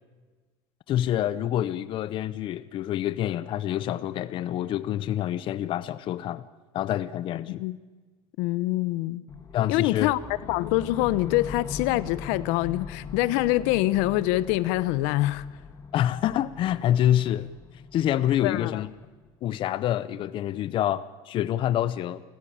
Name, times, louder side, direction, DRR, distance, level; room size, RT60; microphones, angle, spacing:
voice 1, 0.9-6.5 6.7-7.6 9.5-10.1 15.9-17.5 17.9-18.9 19.4-22.2, left 11 dB, 45° left, 0.7 m, -27 dB
voice 2, 8.4-9.2 9.7-10.2 10.5-15.4 18.4-18.8, left 17 dB, 75° left, 0.8 m, -25 dB
sound 1, 9.3-19.3, left 5 dB, 25° left, 1.9 m, -41 dB
28.5 x 15.0 x 8.8 m
cardioid pair, 140°, 12 cm